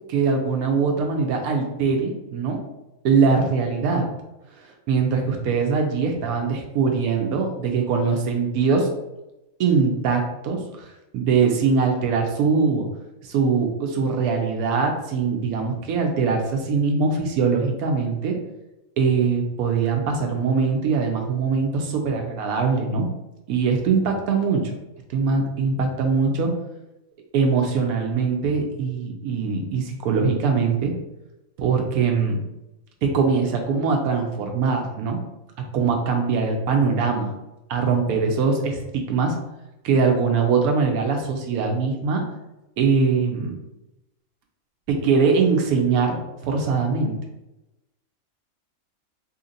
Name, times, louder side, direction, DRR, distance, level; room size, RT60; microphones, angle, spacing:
voice 1, 0.1-2.6 3.0-4.1 4.6-8.9 9.6-12.9 13.2-18.4 19.0-23.1 23.5-24.7 25.1-26.5 27.3-30.9 31.6-32.4 33.0-35.2 35.7-37.3 37.7-39.4 39.8-42.2 42.8-43.5 44.9-46.2 46.4-47.2, right 5 dB, 85° right, 2 dB, 1.1 m, -22 dB
2.8 x 2.8 x 3.8 m, 0.95 s
omnidirectional pair, 1.5 m